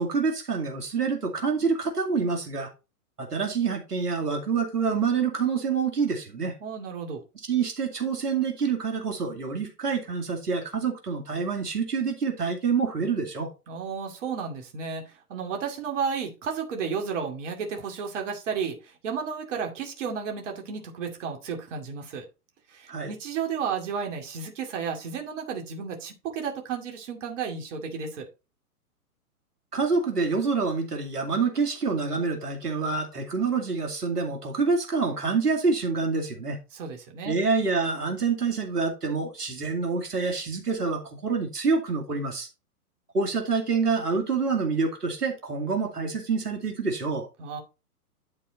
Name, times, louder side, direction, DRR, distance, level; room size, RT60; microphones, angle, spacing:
voice 1, 0.0-2.7 3.2-6.5 7.5-13.5 22.9-23.1 29.7-36.6 37.3-42.5 43.1-47.3, right 5 dB, 80° right, 2.4 m, -27 dB
voice 2, 6.6-7.2 13.7-22.3 22.7-28.3 36.7-37.3 47.4-47.6, right 6 dB, 50° right, 2.5 m, -33 dB
11.5 x 4.2 x 4.1 m
figure-of-eight pair, 120°, 46 cm